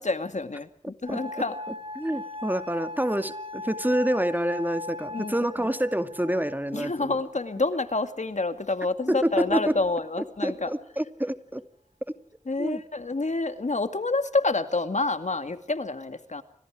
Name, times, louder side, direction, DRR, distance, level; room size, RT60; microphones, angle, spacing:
voice 1, 0.0-1.6 5.1-5.3 6.7-10.7 12.5-16.4, left 3 dB, 65° left, 10 dB, 2.2 m, -28 dB
sound 1, 1.1-8.0 8.8-9.4, left 2 dB, 45° right, 2.6 m, -40 dB
voice 2, 2.0-7.2 9.1-9.7 10.4-11.6 12.6-12.8, right 1 dB, 15° right, 10 dB, 2.3 m, -27 dB
30.0 x 26.5 x 5.0 m, 0.64 s
wide cardioid pair, 45°, 13 cm